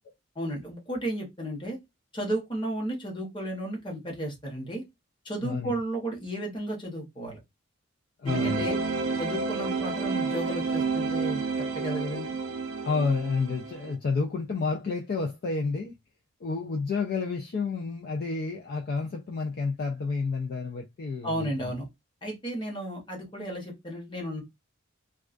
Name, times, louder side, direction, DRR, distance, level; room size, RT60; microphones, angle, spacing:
voice 1, 0.4-1.8 2.1-4.8 5.2-7.4 8.2-8.8 9.2-11.4 11.7-12.3 21.2-21.9 22.2-24.4, right 1 dB, 25° left, 0.9 m, -33 dB
voice 2, 8.2-8.7 12.8-15.9 16.4-21.4, left 4 dB, 50° left, 0.3 m, -30 dB
sound 1, 8.3-14.0, right 4 dB, 70° right, 0.4 m, -30 dB
2.3 x 2.2 x 2.4 m
head